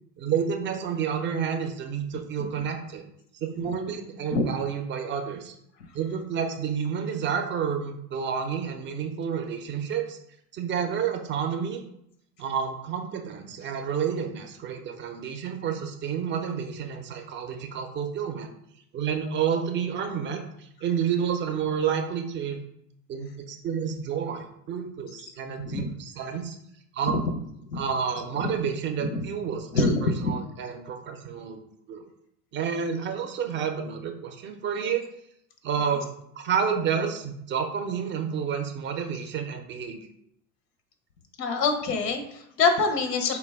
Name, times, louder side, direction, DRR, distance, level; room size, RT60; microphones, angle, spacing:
voice 1, 0.2-3.0 3.4-5.6 5.9-10.2 10.5-11.8 12.4-18.5 18.9-22.6 23.1-26.6 26.9-27.2 27.7-31.6 31.9-32.0 32.5-35.1 35.6-40.1, right 7 dB, 25° right, 5 dB, 0.4 m, -30 dB
voice 2, 29.7-30.3 41.4-43.4, left 4 dB, 85° left, 7 dB, 0.7 m, -25 dB
3.9 x 2.2 x 3.3 m, 0.74 s
hypercardioid pair, 85°, 47 cm